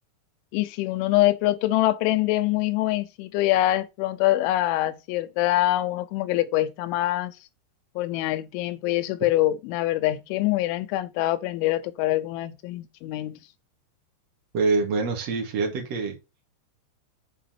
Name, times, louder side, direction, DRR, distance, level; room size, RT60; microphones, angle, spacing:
voice 1, 0.5-7.4 8.0-13.4, left 15 dB, 85° left, 3.2 m, -24 dB
voice 2, 14.5-16.2, right 4 dB, 45° right, 2.5 m, -25 dB
7.4 x 4.2 x 5.8 m
omnidirectional pair, 5.3 m